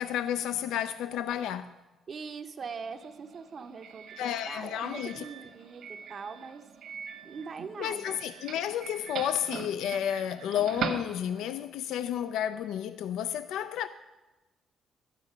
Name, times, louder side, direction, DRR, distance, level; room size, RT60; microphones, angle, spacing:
voice 1, 0.0-1.7 4.2-5.3 7.8-13.9, left 10 dB, 85° left, 0.3 m, -31 dB
voice 2, 2.1-6.7 7.2-8.2, right 5 dB, 50° right, 0.6 m, -42 dB
Doorbell, 2.6-11.6, right 6 dB, 70° right, 1.1 m, -41 dB
11.5 x 8.2 x 5.7 m
cardioid pair, 90°, 0 cm